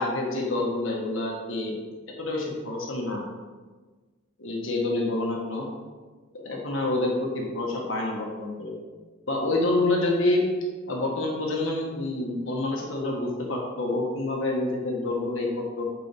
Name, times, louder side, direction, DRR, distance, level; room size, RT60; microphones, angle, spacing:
voice 1, 0.0-1.8 2.2-3.2 4.4-5.7 6.3-8.7 9.3-10.4 10.9-15.8, left 2 dB, 60° left, -1 dB, 1.6 m, -27 dB
8.2 x 5.3 x 3.5 m, 1.3 s
head